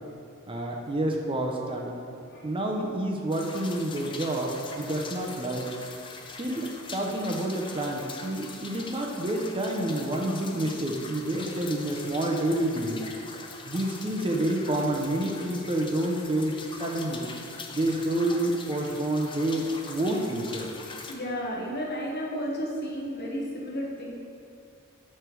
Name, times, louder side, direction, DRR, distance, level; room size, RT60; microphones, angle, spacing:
voice 1, 0.5-1.9 2.4-5.7 6.4-13.0 13.6-17.3 17.7-20.7, right 1 dB, 25° right, 0 dB, 0.6 m, -28 dB
sound 1, 3.3-21.1, left 4 dB, 25° left, 0.5 m, -42 dB
voice 2, 21.1-24.1, equal, 50° left, -3 dB, 1.3 m, -33 dB
7.9 x 3.3 x 6.1 m, 2.5 s
head